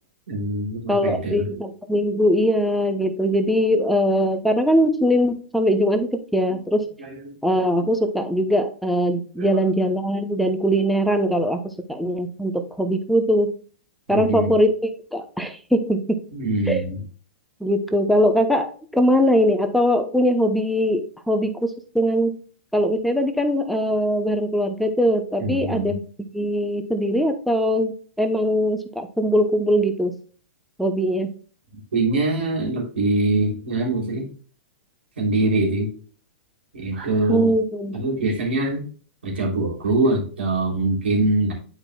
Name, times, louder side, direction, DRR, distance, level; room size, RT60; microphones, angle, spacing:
voice 1, 0.3-1.5 7.0-7.3 9.4-9.6 14.1-14.5 16.3-17.0 25.4-25.9 31.9-34.3 35.2-35.9 36.7-37.5 37.9-38.8 39.2-41.5, right 2 dB, 75° right, -2 dB, 3.1 m, -23 dB
voice 2, 0.9-6.9 7.4-11.6 11.9-13.5 14.1-16.0 16.7-16.8 17.6-22.4 22.7-26.1 26.3-30.2 30.8-31.3 37.3-38.0, equal, ahead, 6 dB, 0.9 m, -21 dB
10.5 x 4.9 x 2.3 m, 0.41 s
figure-of-eight pair, 110°, 6 cm